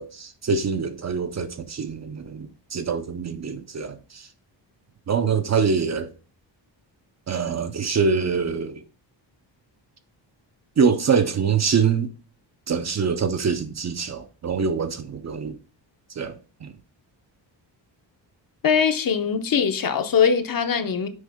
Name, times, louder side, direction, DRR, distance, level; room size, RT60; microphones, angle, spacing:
voice 1, 0.0-4.3 5.1-6.1 7.3-8.8 10.8-12.1 12.7-15.6 16.2-16.7, right 6 dB, 35° right, 0.5 m, -24 dB
voice 2, 18.6-21.1, left 7 dB, 50° left, 0.8 m, -21 dB
6.3 x 4.7 x 3.5 m
wide cardioid pair, 175°, 45 cm